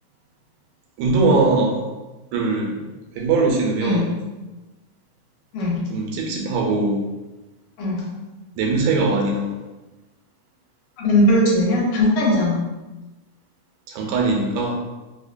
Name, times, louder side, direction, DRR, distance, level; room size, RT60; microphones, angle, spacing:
voice 1, 1.0-1.8 2.3-2.9 3.2-4.1 5.9-7.0 8.6-9.5 13.9-14.8, right 3 dB, 90° right, 0 dB, 2.1 m, -21 dB
voice 2, 5.5-5.9 7.8-8.0 11.0-12.6, left 1 dB, 85° left, -4 dB, 2.3 m, -19 dB
4.9 x 2.1 x 2.5 m, 1.1 s
omnidirectional pair, 3.3 m